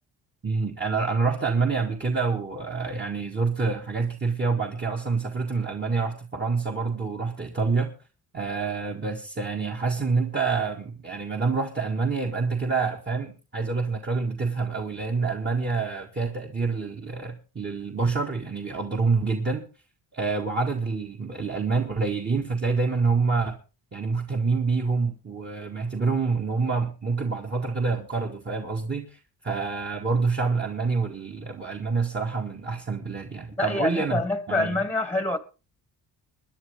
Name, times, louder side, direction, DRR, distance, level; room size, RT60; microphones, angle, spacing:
voice 1, 0.4-7.9 8.3-19.7 20.1-23.6 23.9-34.2 34.5-34.8, right 4 dB, 30° right, 1.9 m, -27 dB
voice 2, 33.6-35.4, left 2 dB, 5° left, 1.3 m, -26 dB
23.0 x 10.0 x 3.5 m
cardioid pair, 110°, 38 cm